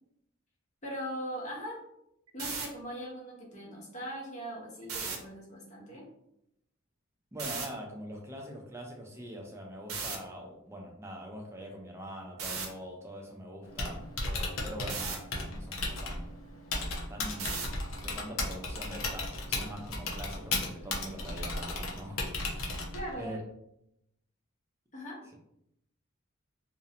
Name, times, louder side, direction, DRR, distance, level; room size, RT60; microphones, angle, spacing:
voice 1, 0.8-1.8 2.3-6.1 22.9-23.4 24.9-25.3, equal, 35° left, -3 dB, 0.7 m, -40 dB
sound 1, 2.3-2.7 4.8-5.2 7.4-7.7 9.9-10.2 12.4-12.7 14.9-15.2 17.4-17.8, right 5 dB, 85° right, 0.5 m, -35 dB
voice 2, 7.3-16.3 17.1-17.6 18.0-22.2 22.5-22.7 23.2-23.4, equal, 10° right, 0 dB, 0.4 m, -43 dB
Typing, 13.6-23.2, left 2 dB, 70° left, 0.5 m, -35 dB
2.5 x 2.1 x 2.7 m, 0.78 s
head